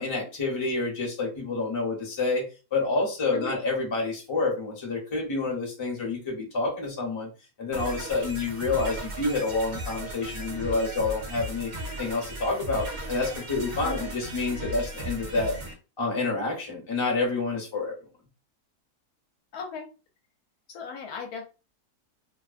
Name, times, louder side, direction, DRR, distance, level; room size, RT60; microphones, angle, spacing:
voice 1, 0.0-2.4 2.7-7.3 7.6-11.7 12.0-15.5 16.0-17.9, left 3 dB, 25° left, -2 dB, 0.6 m, -28 dB
sound 1, 7.7-15.7, right 1 dB, 50° right, 0.9 m, -36 dB
voice 2, 19.5-19.9 20.7-21.5, left 5 dB, 70° left, 2 dB, 1.1 m, -37 dB
2.8 x 2.0 x 2.4 m, 0.31 s
omnidirectional pair, 1.7 m